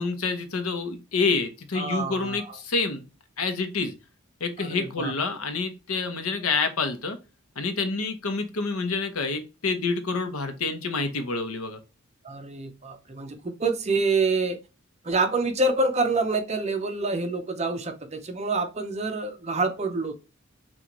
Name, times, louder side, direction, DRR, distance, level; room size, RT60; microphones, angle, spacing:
voice 1, 0.0-3.1 3.4-3.9 4.4-7.2 7.6-11.8, left 4 dB, 85° left, 0.9 m, -28 dB
voice 2, 1.7-2.6 4.6-5.1 12.2-14.6 15.0-20.1, right 3 dB, 30° right, 0.7 m, -27 dB
6.1 x 2.5 x 3.0 m
head